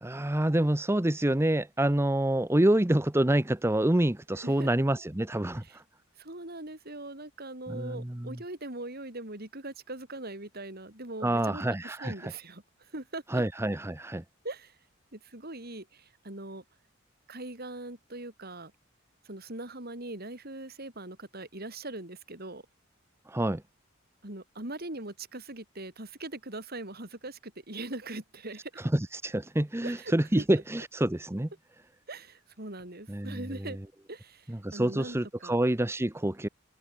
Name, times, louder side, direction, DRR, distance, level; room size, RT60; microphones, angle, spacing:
voice 1, 0.0-5.6 7.7-8.4 11.2-12.3 13.3-14.2 23.3-23.6 28.9-31.5 33.1-33.8 34.5-36.5, right 1 dB, 15° right, 0.8 m, -27 dB
voice 2, 4.4-4.7 5.6-5.8 6.2-13.4 14.4-14.8 15.1-16.6 17.3-18.7 19.2-22.6 24.2-28.8 29.8-30.4 32.1-33.8 34.1-35.6, right 2 dB, 50° right, 5.5 m, -41 dB
head